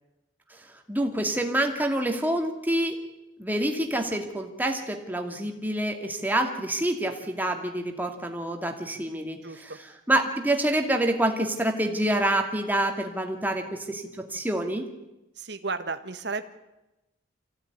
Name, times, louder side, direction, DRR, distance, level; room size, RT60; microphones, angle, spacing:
voice 1, 0.5-3.0 3.4-14.9, right 1 dB, 10° right, 4 dB, 2.4 m, -27 dB
voice 2, 9.4-9.8 15.4-16.4, right 4 dB, 60° right, 8 dB, 1.6 m, -33 dB
25.5 x 16.5 x 9.8 m, 0.98 s
head